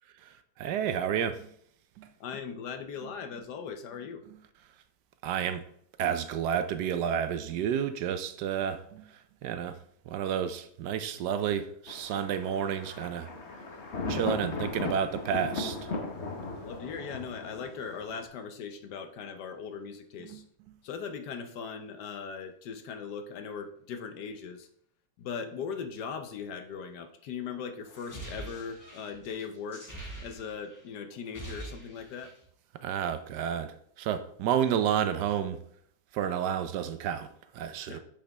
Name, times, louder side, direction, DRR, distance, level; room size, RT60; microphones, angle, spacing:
voice 1, 0.6-1.5 2.0-2.1 5.2-5.6 6.0-9.1 9.4-9.8 10.1-13.3 14.1-15.9 32.8-35.6 36.1-37.3 37.5-38.0, right 8 dB, 85° right, 1.3 m, -30 dB
voice 2, 2.2-4.2 14.0-14.2 16.6-20.4 20.8-24.7 25.2-32.3 37.9-38.0, left 6 dB, 80° left, 1.4 m, -39 dB
Thunder, 11.9-18.3, left 3 dB, 45° left, 1.2 m, -37 dB
sound 1, 27.9-30.8 31.1-32.5, right 2 dB, 10° left, 1.6 m, -44 dB
8.6 x 5.0 x 3.4 m
omnidirectional pair, 1.8 m